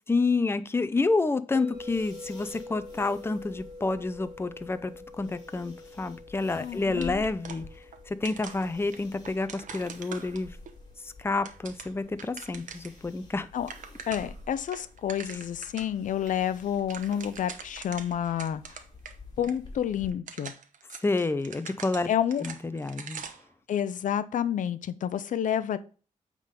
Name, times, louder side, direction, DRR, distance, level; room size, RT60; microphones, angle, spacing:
voice 1, 0.1-4.9 5.2-7.6 8.1-10.5 11.0-13.5 21.0-22.1 22.4-23.2, left 3 dB, 20° left, 12 dB, 0.6 m, -29 dB
sound 1, 1.5-11.6, left 2 dB, 10° right, 2.5 m, -47 dB
sound 2, 1.7-20.1, left 3 dB, 35° left, 2.5 m, -50 dB
voice 2, 6.6-7.2 13.5-13.7 14.1-18.6 19.4-20.5 22.1-22.4 23.7-25.8, left 9 dB, 75° left, 14 dB, 0.6 m, -29 dB
sound 3, 7.0-8.0 8.2-10.7 11.2-13.0 13.3-13.4 13.6-14.4 14.7-15.9 16.3-16.4 16.7-19.1 19.4-19.5 20.1-23.5, right 6 dB, 75° right, 1.0 m, -43 dB
8.7 x 3.8 x 5.2 m, 0.37 s
cardioid pair, 85°, 13 cm